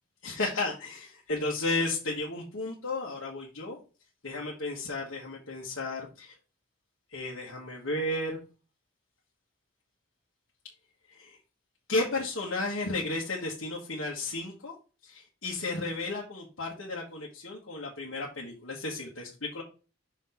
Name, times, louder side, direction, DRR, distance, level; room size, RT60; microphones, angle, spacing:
voice 1, 0.2-3.8 4.2-6.3 7.1-8.4 11.1-11.4 11.9-14.7 15.0-19.6, left 2 dB, 60° left, -4 dB, 1.4 m, -33 dB
6.2 x 4.0 x 4.2 m, 0.33 s
head